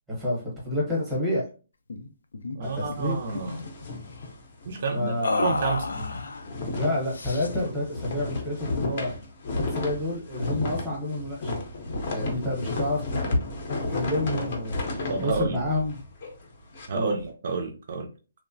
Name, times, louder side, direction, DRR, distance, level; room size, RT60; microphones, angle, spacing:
voice 1, 0.1-1.4 2.6-3.2 4.9-5.3 6.7-9.1 9.5-11.6 12.1-13.2 13.9-14.8 15.2-16.0 16.9-17.1, left 1 dB, ahead, 0.7 m, -29 dB
sound 1, 1.9-2.1 2.3-2.6 2.9-3.6 5.2-6.5 7.1-7.7, left 3 dB, 90° left, 0.4 m, -30 dB
voice 2, 2.5-3.6 4.6-5.9 15.1-15.6 16.9-18.1, right 4 dB, 40° right, 0.3 m, -29 dB
sound 2, 2.6-4.9 5.2-5.4 5.7-16.9, left 2 dB, 30° left, 0.5 m, -32 dB
2.9 x 2.0 x 2.5 m
hypercardioid pair, 175°, 0 cm